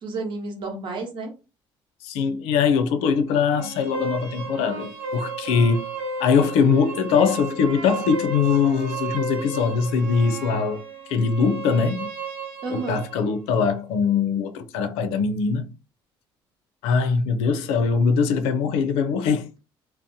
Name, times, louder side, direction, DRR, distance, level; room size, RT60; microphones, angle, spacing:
voice 1, 0.0-1.3 12.6-13.0, right 3 dB, 55° right, 1.0 m, -31 dB
voice 2, 2.0-5.9 6.2-10.8 11.1-12.1 12.7-15.7 16.8-19.4, left 5 dB, 90° left, 0.5 m, -22 dB
sound 1, 3.3-13.3, right 3 dB, 80° right, 0.8 m, -34 dB
2.7 x 2.0 x 2.7 m
cardioid pair, 110°, 10 cm